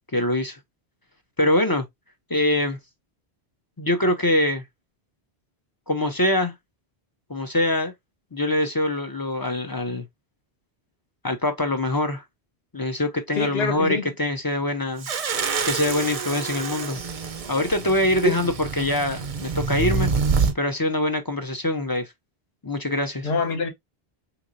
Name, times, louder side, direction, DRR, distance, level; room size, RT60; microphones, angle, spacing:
voice 1, 0.1-0.6 1.4-1.9 2.3-2.8 3.8-4.6 5.9-6.5 7.3-7.9 8.3-10.0 11.2-12.2 12.7-15.1 15.7-17.0 17.5-20.1 20.5-22.1 22.6-23.3, left 1 dB, 30° left, 0.4 m, -24 dB
voice 2, 13.4-14.1 18.2-18.4 23.2-23.7, left 4 dB, 70° left, 1.1 m, -25 dB
sound 1, 15.0-20.5, right 5 dB, 45° right, 0.5 m, -27 dB
3.7 x 3.0 x 2.5 m
omnidirectional pair, 1.1 m